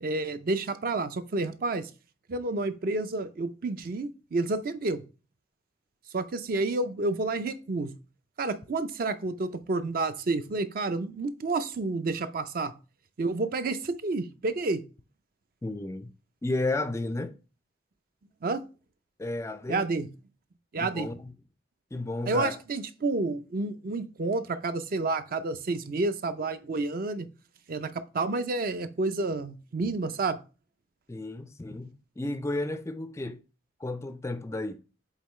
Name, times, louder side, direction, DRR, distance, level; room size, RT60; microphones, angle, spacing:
voice 1, 0.0-1.9 2.3-5.0 6.1-7.9 8.4-12.7 13.2-14.8 18.4-18.6 19.7-20.1 20.7-21.1 22.3-27.3 27.7-30.4, right 3 dB, 50° right, 0.5 m, -30 dB
voice 2, 15.6-16.1 16.4-17.3 19.2-19.9 20.8-21.3 21.9-22.6 31.1-33.4 33.8-34.8, left 2 dB, 15° left, 0.3 m, -33 dB
8.2 x 3.7 x 3.1 m
head